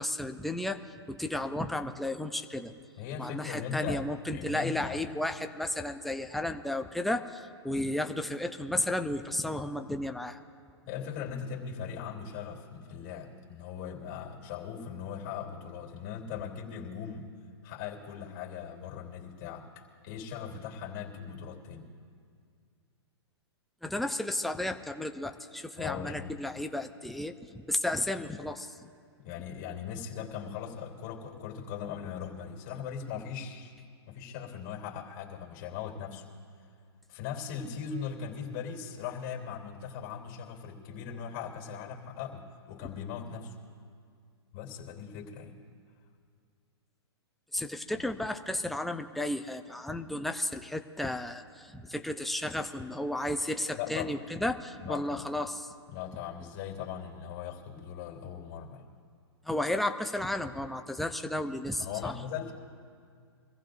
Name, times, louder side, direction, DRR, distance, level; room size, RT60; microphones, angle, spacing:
voice 1, 0.0-2.7 3.2-10.4 23.8-28.9 47.5-55.7 59.5-62.2, left 1 dB, ahead, 6 dB, 0.6 m, -33 dB
voice 2, 3.0-4.0 4.3-5.3 10.8-17.3 17.6-21.9 25.7-26.3 29.2-33.7 34.1-36.2 37.1-43.5 44.5-45.6 47.9-48.0 53.7-54.2 54.8-55.2 55.9-58.8 61.8-62.5, left 7 dB, 40° left, 0 dB, 3.1 m, -39 dB
25.0 x 15.5 x 2.6 m, 2.2 s
hypercardioid pair, 130°, 14 cm